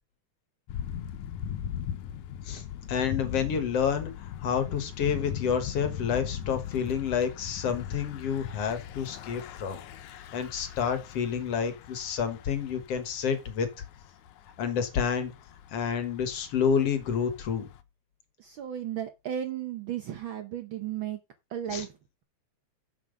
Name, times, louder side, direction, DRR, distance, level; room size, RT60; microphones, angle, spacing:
Thunder / Bicycle, 0.7-17.8, left 9 dB, 75° left, 2.2 m, -40 dB
voice 1, 2.9-9.8 10.1-13.7 14.6-15.3 15.7-17.7 21.7-21.8, left 7 dB, 60° left, 2.2 m, -29 dB
voice 2, 18.4-21.2 21.5-21.9, right 10 dB, 85° right, 1.1 m, -34 dB
7.5 x 7.4 x 5.2 m
omnidirectional pair, 3.4 m